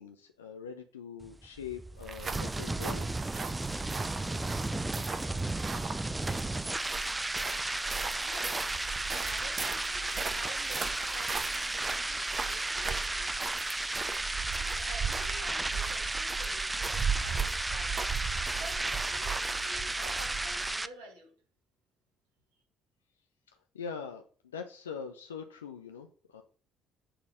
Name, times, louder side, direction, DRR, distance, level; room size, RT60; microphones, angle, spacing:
voice 1, 0.0-3.1 23.7-24.2 24.5-26.4, left 6 dB, 80° left, 0.6 m, -42 dB
sound 1, 1.2-20.9, right 2 dB, 15° right, 0.5 m, -34 dB
sound 2, 2.0-20.8, right 6 dB, 35° right, 1.0 m, -38 dB
voice 2, 8.2-8.7 9.1-13.4 14.2-18.0 18.5-21.3, right 2 dB, 75° right, 2.7 m, -49 dB
7.8 x 4.1 x 6.6 m
figure-of-eight pair, 50°, 0 cm